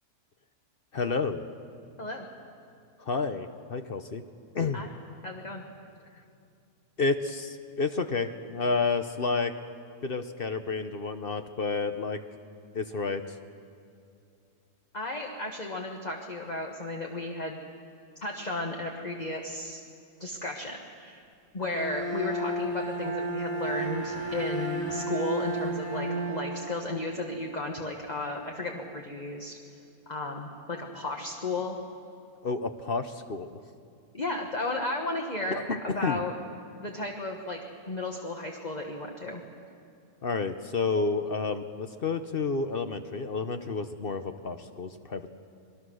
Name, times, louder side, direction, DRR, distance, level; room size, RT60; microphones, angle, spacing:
voice 1, 0.9-1.4 3.0-4.2 4.5-4.8 7.0-9.5 10.0-12.2 12.7-13.3 32.4-33.6 35.5-36.2 40.2-45.3, left 4 dB, 45° left, 8 dB, 0.9 m, -30 dB
voice 2, 5.2-5.6 14.9-17.6 18.2-19.8 20.2-21.2 21.5-29.6 30.1-31.8 34.1-36.3 36.8-37.6 37.9-39.4, left 2 dB, 30° left, 1 dB, 1.5 m, -34 dB
Bowed string instrument, 21.6-27.6, right 1 dB, 10° left, 4.6 m, -33 dB
26.5 x 21.5 x 6.4 m, 2.5 s
omnidirectional pair, 1.6 m